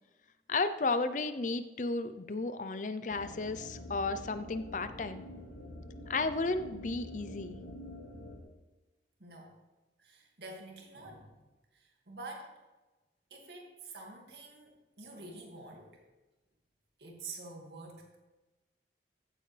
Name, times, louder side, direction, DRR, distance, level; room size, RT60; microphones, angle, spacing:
voice 1, 0.5-5.2 6.1-7.6, left 3 dB, 45° left, 11 dB, 0.6 m, -33 dB
sound 1, 3.1-8.4, left 1 dB, 85° left, 2.4 m, -47 dB
voice 2, 9.2-9.5 10.0-11.3 11.7-12.6 13.3-16.0 17.0-18.2, right 3 dB, 70° right, 0 dB, 2.2 m, -48 dB
15.5 x 8.0 x 3.4 m, 1.1 s
head